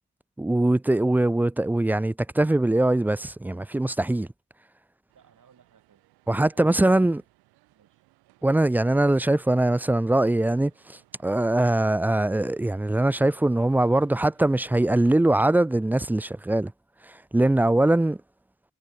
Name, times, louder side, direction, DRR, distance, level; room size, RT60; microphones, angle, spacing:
voice 1, 0.4-4.3 6.3-7.2 8.4-16.7 17.1-18.2, right 1 dB, 5° right, 0.4 m, -22 dB
voice 2, 5.1-6.1 6.5-7.3 7.7-8.1 8.4-8.6, right 7 dB, 55° right, 5.4 m, -60 dB
sound 1, 5.1-15.1, right 21 dB, 85° right, 5.5 m, -64 dB
hypercardioid pair, 45°, 38 cm